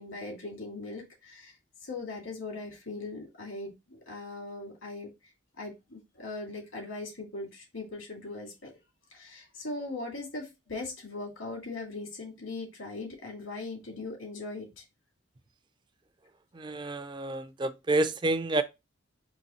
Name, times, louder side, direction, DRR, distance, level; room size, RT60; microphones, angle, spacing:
voice 1, 0.0-1.6 1.8-5.1 5.6-8.7 9.1-14.8, left 3 dB, 85° left, 2.2 m, -40 dB
voice 2, 16.6-18.6, right 2 dB, 20° right, 0.3 m, -29 dB
4.0 x 3.0 x 4.1 m
head